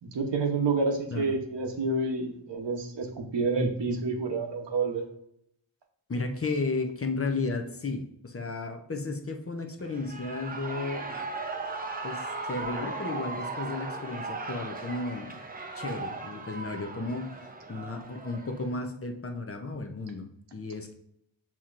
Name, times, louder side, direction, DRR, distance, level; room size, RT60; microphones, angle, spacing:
voice 1, 0.0-5.0, right 3 dB, 60° right, 3 dB, 1.0 m, -29 dB
voice 2, 6.1-11.3 12.0-15.4 15.8-21.0, left 3 dB, 30° left, 5 dB, 0.6 m, -34 dB
Shout / Cheering, 9.8-18.7, right 3 dB, 20° right, 0.6 m, -37 dB
7.0 x 2.9 x 2.5 m, 0.73 s
cardioid pair, 50°, 48 cm